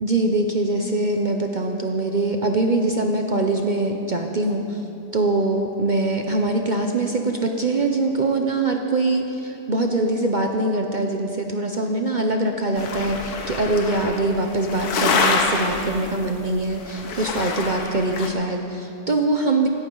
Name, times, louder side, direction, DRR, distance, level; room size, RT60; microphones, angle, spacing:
voice 1, 0.0-4.8 5.1-19.7, right 2 dB, 45° right, 3 dB, 0.6 m, -23 dB
sound 1, 12.8-16.4 16.8-18.3, left 4 dB, 90° left, 1.6 m, -26 dB
16.5 x 13.5 x 3.8 m, 2.8 s
omnidirectional pair, 1.6 m